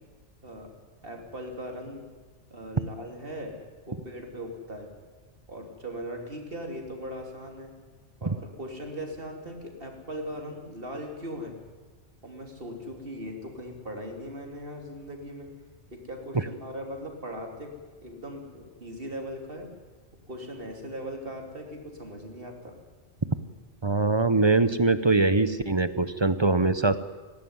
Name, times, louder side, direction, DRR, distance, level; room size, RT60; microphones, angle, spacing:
voice 1, 1.0-2.0 2.5-3.6 3.9-4.9 5.5-7.7 8.2-11.5 12.2-15.5 15.9-17.7 18.0-19.7 20.3-22.7, equal, 50° right, 2 dB, 3.3 m, -39 dB
voice 2, 23.8-27.0, right 3 dB, 25° right, 13 dB, 0.7 m, -22 dB
19.0 x 17.0 x 9.6 m, 1.4 s
omnidirectional pair, 1.2 m